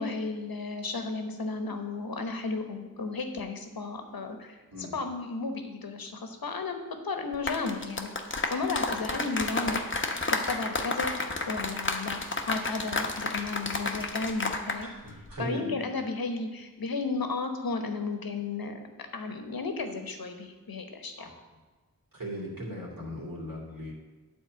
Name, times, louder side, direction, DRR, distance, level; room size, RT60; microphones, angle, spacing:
voice 1, 0.0-8.1 8.5-9.8 10.3-11.1 11.5-12.2 12.5-14.9 15.4-18.8 19.1-21.3, left 3 dB, 75° left, 6 dB, 1.1 m, -34 dB
sound 1, 7.3-14.8 15.1-15.3, left 3 dB, 35° left, 0.9 m, -31 dB
voice 2, 14.8-15.8 21.2-21.3 22.1-23.9, equal, 70° right, -4 dB, 2.8 m, -38 dB
9.5 x 4.4 x 7.6 m, 1.2 s
wide cardioid pair, 75°, 36 cm